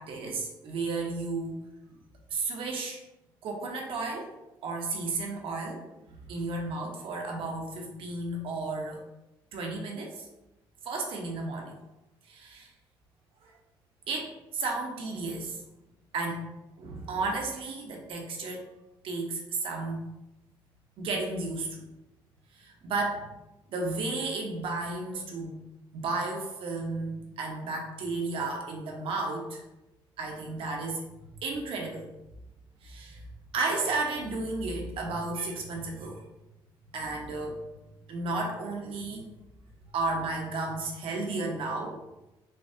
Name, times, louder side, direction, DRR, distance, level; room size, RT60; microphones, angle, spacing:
voice 1, 0.0-1.5 2.3-3.0 3.4-4.3 4.6-9.0 9.5-10.3 10.8-11.7 12.3-12.7 13.4-13.5 14.1-15.6 16.1-16.5 16.8-18.6 19.0-20.0 21.0-21.8 22.5-23.3 23.7-25.5 25.9-29.6 30.2-31.0 31.4-32.1 32.8-33.3 33.5-36.2 36.9-37.6 38.1-39.3 39.9-42.0, right 3 dB, 70° right, 1 dB, 1.0 m, -33 dB
6.8 x 2.3 x 2.8 m, 0.95 s
cardioid pair, 100°, 10 cm